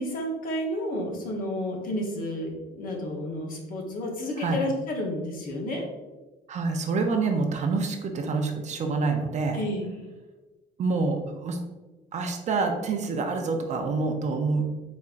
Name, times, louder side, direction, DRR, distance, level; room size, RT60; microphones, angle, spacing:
voice 1, 0.0-5.9 9.5-9.9, left 1 dB, 55° left, 0 dB, 1.0 m, -31 dB
voice 2, 6.5-9.6 10.8-11.6 12.1-14.6, right 4 dB, 45° right, 4 dB, 0.5 m, -27 dB
4.1 x 3.5 x 2.5 m, 1.2 s
cardioid pair, 110°, 17 cm